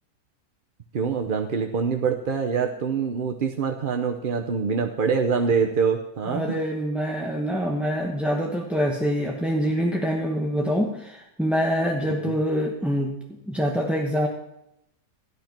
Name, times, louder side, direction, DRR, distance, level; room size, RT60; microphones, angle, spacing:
voice 1, 0.9-6.6 12.1-12.3, right 6 dB, 45° right, 3 dB, 0.7 m, -25 dB
voice 2, 6.3-14.3, equal, ahead, 0 dB, 0.9 m, -25 dB
13.5 x 11.0 x 5.9 m, 0.85 s
omnidirectional pair, 1.7 m